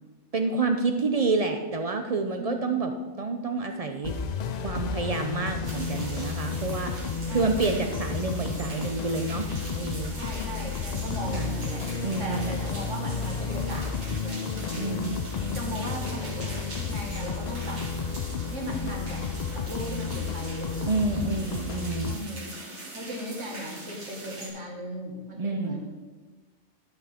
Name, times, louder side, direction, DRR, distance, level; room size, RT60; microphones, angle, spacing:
voice 1, 0.3-2.9 3.2-4.1 4.6-6.9 7.3-9.5 9.7-10.1 11.3-11.5 12.0-12.5 14.8-15.3 20.8-22.2 25.4-25.8, right 4 dB, 50° right, 5 dB, 0.5 m, -28 dB
voice 2, 2.4-2.9 7.3-7.6 10.2-11.9 12.2-15.1 15.5-17.8 18.4-21.5 22.0-22.6 22.9-25.9, equal, 90° right, -2 dB, 2.1 m, -37 dB
sound 1, 4.0-22.2, left 5 dB, 60° left, 0.4 m, -32 dB
sound 2, 5.6-24.5, right 2 dB, 75° right, 1.8 m, -42 dB
11.5 x 5.6 x 3.5 m, 1.3 s
omnidirectional pair, 1.2 m